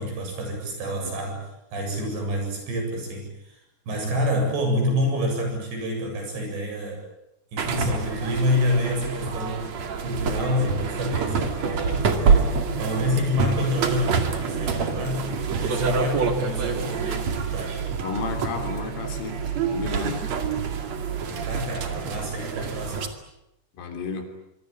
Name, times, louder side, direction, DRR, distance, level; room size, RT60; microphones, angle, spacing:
voice 1, 0.0-3.6 3.9-7.0 7.5-9.7 10.0-12.5 12.8-17.8 21.2-23.0, left 1 dB, 60° right, 3 dB, 9.9 m, -28 dB
sound 1, 7.6-23.1, right 5 dB, 45° right, 2.7 m, -26 dB
voice 2, 18.0-19.4 19.7-20.2 23.8-24.3, left 4 dB, 80° left, 6 dB, 6.0 m, -32 dB
25.5 x 24.0 x 8.9 m, 0.86 s
omnidirectional pair, 5.7 m